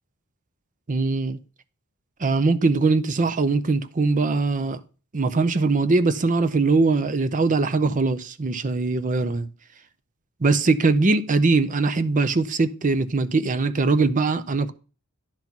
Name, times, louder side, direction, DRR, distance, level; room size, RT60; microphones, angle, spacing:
voice 1, 0.9-1.4 2.2-4.8 5.1-9.5 10.4-14.7, right 3 dB, 35° right, 0.6 m, -21 dB
10.5 x 4.0 x 5.9 m
head